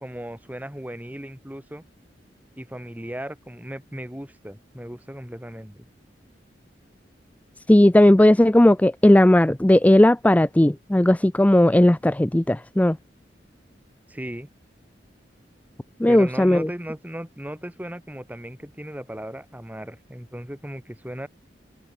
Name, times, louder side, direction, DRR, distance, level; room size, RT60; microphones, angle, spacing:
voice 1, 0.0-1.8 2.6-5.9 14.1-14.5 16.1-21.3, right 1 dB, 10° right, 1.8 m, -36 dB
voice 2, 7.7-13.0 16.0-16.7, left 1 dB, 10° left, 0.4 m, -16 dB
head